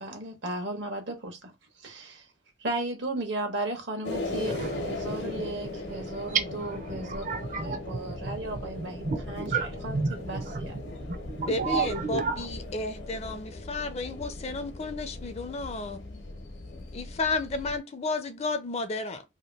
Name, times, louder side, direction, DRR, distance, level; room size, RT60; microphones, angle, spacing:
voice 1, 0.0-1.5 1.8-2.2 2.6-7.2 7.6-10.8, right 2 dB, 75° right, 1.1 m, -35 dB
sound 1, 4.0-17.8, left 2 dB, 70° left, 0.8 m, -38 dB
voice 2, 4.5-5.5 5.9-12.5, right 5 dB, 45° right, 0.6 m, -33 dB
voice 3, 11.5-16.2 16.9-19.2, left 3 dB, 35° left, 0.4 m, -32 dB
2.8 x 2.6 x 3.3 m
head